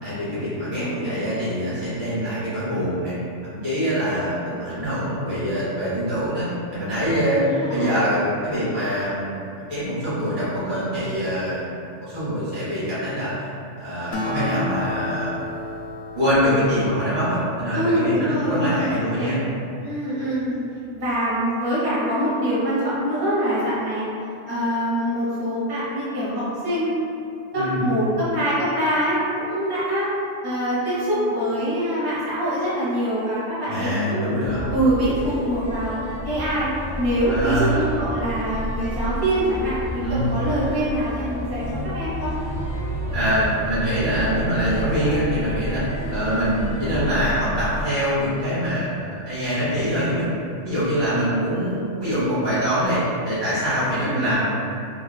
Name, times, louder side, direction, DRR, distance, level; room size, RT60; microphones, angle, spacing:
voice 1, 0.0-3.1 3.4-6.5 6.7-11.7 12.0-13.5 13.8-15.3 16.1-19.4 27.5-27.8 33.7-34.6 37.3-37.8 40.0-40.3 43.1-45.8 46.1-50.4 50.6-54.5, equal, 65° right, -13 dB, 1.8 m, -24 dB
voice 2, 0.8-1.3 7.4-8.0 17.7-20.6 20.9-24.1 24.5-27.0 27.5-30.1 30.4-34.2 34.7-36.0 36.2-36.7 37.0-42.3 46.0-46.2 54.0-54.3, equal, 20° right, -11 dB, 0.7 m, -24 dB
Acoustic guitar, 14.1-17.8, left 2 dB, 90° left, 0.4 m, -32 dB
sound 1, 34.4-47.8, equal, 55° left, 1.1 m, -31 dB
3.7 x 2.3 x 2.2 m, 2.5 s
omnidirectional pair, 1.3 m